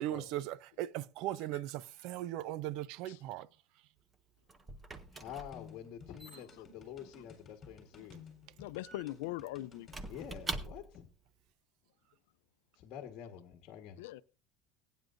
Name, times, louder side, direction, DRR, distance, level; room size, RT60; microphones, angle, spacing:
voice 1, 0.0-3.5, right 14 dB, 50° right, 0.5 m, -38 dB
Squeak / Wood, 4.0-11.1, right 3 dB, 15° right, 0.7 m, -46 dB
voice 2, 5.1-8.2 10.1-11.1 12.7-14.0, left 9 dB, 40° left, 1.4 m, -48 dB
sound 1, 5.5-10.7, left 5 dB, 20° left, 3.7 m, -55 dB
voice 3, 8.6-9.9 14.0-14.2, left 17 dB, 80° left, 0.5 m, -41 dB
21.0 x 9.2 x 2.6 m
cardioid pair, 165°, 0 cm